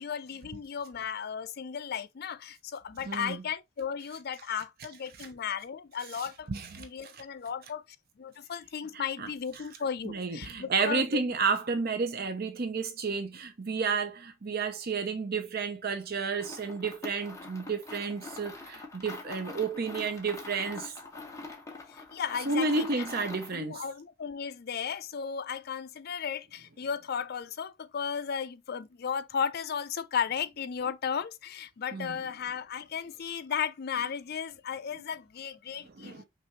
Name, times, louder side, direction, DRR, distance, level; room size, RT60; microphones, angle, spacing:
voice 1, 0.0-6.5 6.8-7.8 8.2-11.3 21.9-23.1 23.5-36.2, left 7 dB, 55° left, 0.4 m, -35 dB
voice 2, 3.0-3.4 6.1-6.9 7.1-7.2 8.9-9.3 10.0-21.0 22.5-23.8 31.9-32.2 35.8-36.2, right 4 dB, 50° right, 0.6 m, -31 dB
sound 1, 16.3-23.6, left 3 dB, 15° left, 0.9 m, -44 dB
5.5 x 2.5 x 2.9 m
head